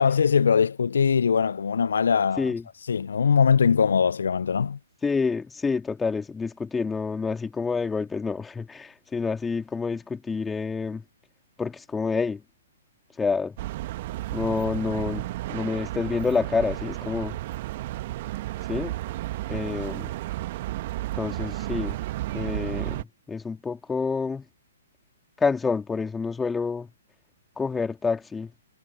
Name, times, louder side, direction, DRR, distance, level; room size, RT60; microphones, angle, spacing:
voice 1, 0.0-2.5 2.9-4.8, left 6 dB, 65° left, 0.4 m, -21 dB
voice 2, 5.0-11.0 11.6-12.4 13.2-13.6 14.3-17.4 18.7-19.0 19.5-20.1 21.1-22.0 22.3-24.5 25.4-26.9 27.6-28.5, left 4 dB, 10° left, 2.8 m, -28 dB
sound 1, 13.6-23.0, right 16 dB, 45° right, 1.5 m, -32 dB
figure-of-eight pair, 120°, 0 cm